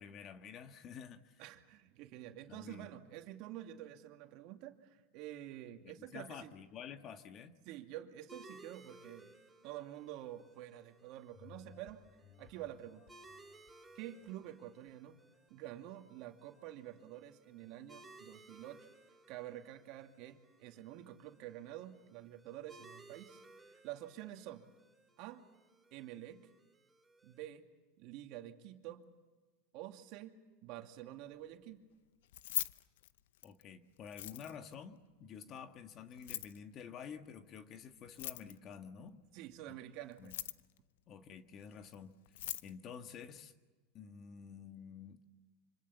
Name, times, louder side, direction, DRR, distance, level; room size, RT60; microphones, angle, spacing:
voice 1, 0.0-1.4 2.5-2.9 5.8-7.6 33.4-39.2 39.7-39.8 40.2-40.3 41.1-43.5 43.9-45.2, left 7 dB, 40° left, 8 dB, 1.7 m, -50 dB
voice 2, 1.4-6.5 7.6-9.4 9.6-12.0 12.4-13.0 13.9-15.2 15.5-18.9 19.3-23.4 23.7-24.7 25.2-25.5 25.9-26.5 27.2-27.7 28.0-29.1 29.7-31.8 39.3-40.4, right 13 dB, 55° right, 5 dB, 2.4 m, -48 dB
sound 1, 8.3-27.4, right 2 dB, 5° right, 3.5 m, -61 dB
sound 2, 11.3-16.3 16.7-16.8, left 8 dB, 60° left, 3.2 m, -63 dB
Keys jangling, 32.2-33.6 34.1-34.7 36.1-36.6 38.1-38.7 40.1-40.8 41.9-42.0 42.3-42.7, left 14 dB, 80° left, 0.7 m, -41 dB
26.0 x 25.5 x 7.3 m, 1.3 s
supercardioid pair, 120°, 0 cm